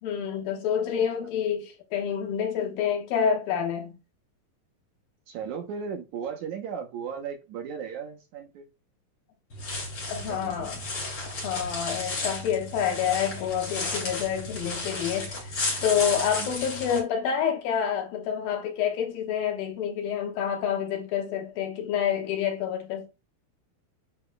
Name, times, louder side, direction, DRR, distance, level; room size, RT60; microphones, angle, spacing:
voice 1, 0.0-3.9 10.1-10.8 11.3-15.5 15.8-23.1, left 8 dB, 80° left, 3.0 m, -28 dB
voice 2, 1.0-1.3 5.3-8.7 10.3-10.7 16.3-16.6, right 7 dB, 70° right, 2.0 m, -36 dB
sound 1, 9.5-17.0, left 2 dB, 40° left, 3.0 m, -33 dB
11.0 x 4.3 x 2.3 m
omnidirectional pair, 4.2 m